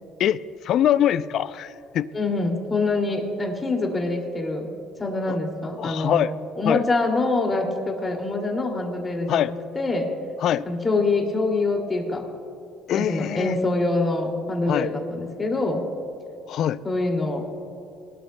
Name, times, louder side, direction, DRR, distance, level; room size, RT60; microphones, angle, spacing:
voice 1, 0.7-1.7 1.9-2.1 5.3-5.4 5.8-6.3 6.7-6.8 9.3-9.5 10.4-10.6 12.9-13.6 14.7-14.9 16.5-16.8, left 11 dB, 60° left, 16 dB, 0.4 m, -22 dB
voice 2, 2.1-4.7 5.0-6.2 6.6-10.1 10.6-12.2 12.9-15.8 16.8-17.4, left 2 dB, 25° left, 1 dB, 2.4 m, -25 dB
21.5 x 13.0 x 2.2 m, 2.7 s
cardioid pair, 105°, 0 cm